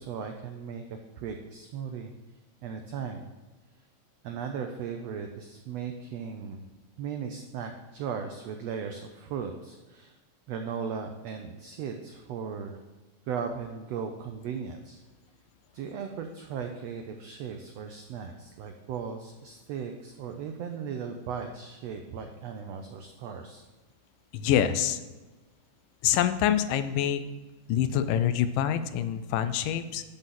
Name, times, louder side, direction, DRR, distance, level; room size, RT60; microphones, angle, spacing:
voice 1, 0.0-2.1 2.6-3.2 4.2-6.6 7.0-10.2 10.5-12.8 13.3-15.0 15.7-23.6, right 6 dB, 90° right, 5 dB, 1.4 m, -37 dB
voice 2, 24.3-25.0 26.0-27.3 27.7-30.0, left 10 dB, 85° left, 12 dB, 2.3 m, -26 dB
11.5 x 4.0 x 7.4 m, 1.2 s
omnidirectional pair, 3.7 m